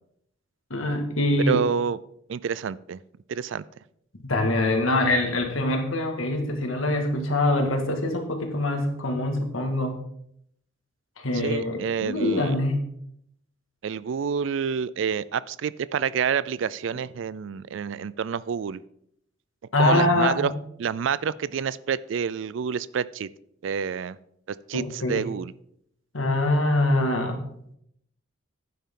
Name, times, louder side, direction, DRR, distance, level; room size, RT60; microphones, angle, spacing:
voice 1, 0.7-1.6 4.2-10.0 11.2-12.8 19.7-20.5 24.7-25.2 26.1-27.4, left 2 dB, 90° left, 4 dB, 2.0 m, -24 dB
voice 2, 1.5-2.0 2.3-3.0 3.3-3.6 11.3-12.5 13.8-18.8 19.8-20.5 20.8-23.3 23.6-24.2 24.5-25.5, right 7 dB, 70° right, 19 dB, 0.4 m, -28 dB
11.0 x 9.3 x 3.7 m, 0.73 s
head